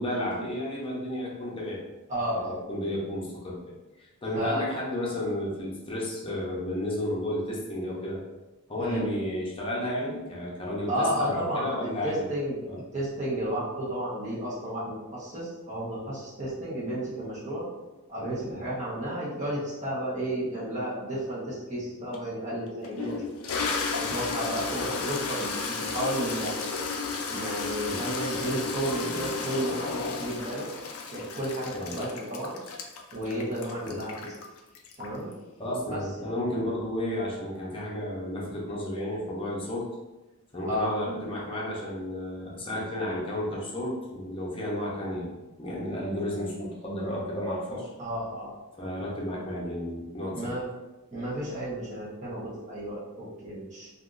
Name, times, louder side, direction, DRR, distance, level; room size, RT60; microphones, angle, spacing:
voice 1, 0.0-1.8 2.3-3.6 4.0-8.2 8.7-12.3 12.6-12.8 18.5-18.7 27.8-28.0 31.7-32.0 33.9-34.0 35.6-39.9 40.5-47.9 48.8-50.5, left 1 dB, 25° left, -5 dB, 0.7 m, -32 dB
voice 2, 2.1-2.6 4.3-4.6 8.8-9.1 10.9-11.7 12.0-12.6 12.9-17.7 18.1-23.2 24.0-26.7 27.3-30.7 31.1-32.6 33.1-34.3 35.0-35.3 35.9-36.3 40.6-40.9 48.0-48.5 50.3-50.6 51.1-53.9, right 1 dB, 35° right, -8 dB, 0.9 m, -32 dB
Toilet flush, 22.1-22.2 22.8-35.3, left 4 dB, 65° left, 0.4 m, -33 dB
3.4 x 2.5 x 2.5 m, 1.1 s
head